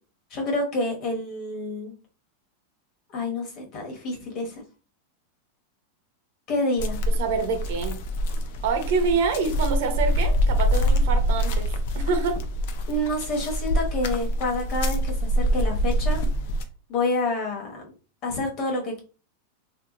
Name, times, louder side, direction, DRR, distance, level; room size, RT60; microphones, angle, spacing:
voice 1, 0.3-1.9 3.1-4.6 6.5-7.0 12.9-16.2 16.9-17.9 18.2-19.0, left 2 dB, 30° left, 0 dB, 1.0 m, -28 dB
sound 1, 6.8-16.6, equal, 50° left, 0.5 m, -25 dB
voice 2, 7.2-8.0 8.6-11.7 11.9-12.4, right 5 dB, 50° right, 6 dB, 0.7 m, -26 dB
2.7 x 2.2 x 3.7 m, 0.35 s
supercardioid pair, 175°, 0 cm